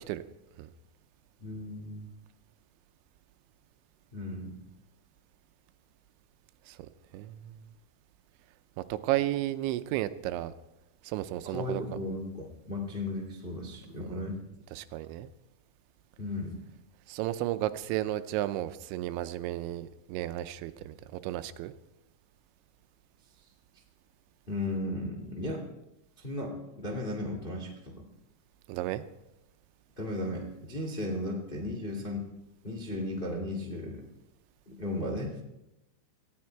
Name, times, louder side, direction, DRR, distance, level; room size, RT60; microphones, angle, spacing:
voice 1, 1.4-2.1 4.1-4.6 11.4-14.4 16.2-16.5 24.5-25.6 26.2-27.9 30.0-32.3 32.6-34.0 34.7-35.3, left 1 dB, 80° left, 1 dB, 0.4 m, -35 dB
voice 2, 6.7-7.6 8.8-10.5 11.0-11.8 14.1-14.2 14.7-15.3 17.1-21.7 28.7-29.0, right 14 dB, 85° right, 12 dB, 2.9 m, -33 dB
18.5 x 14.5 x 4.6 m, 0.95 s
omnidirectional pair, 5.3 m